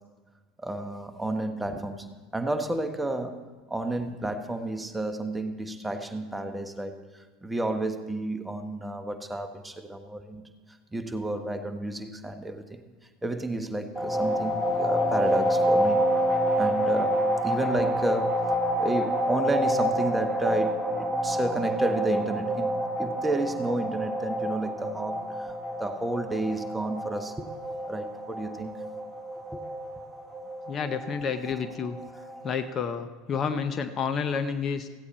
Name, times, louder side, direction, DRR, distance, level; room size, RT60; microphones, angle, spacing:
voice 1, 0.6-3.4 3.7-12.8 13.2-16.1 16.6-25.5 25.8-27.4 27.9-28.7 29.5-29.6, right 2 dB, 10° right, 8 dB, 1.0 m, -31 dB
sound 1, 13.9-32.5, equal, 10° left, 3.4 m, -28 dB
voice 2, 30.7-32.0 32.4-34.9, left 6 dB, 40° left, 10 dB, 0.7 m, -30 dB
15.0 x 8.5 x 4.3 m, 1.4 s
hypercardioid pair, 80°, 0 cm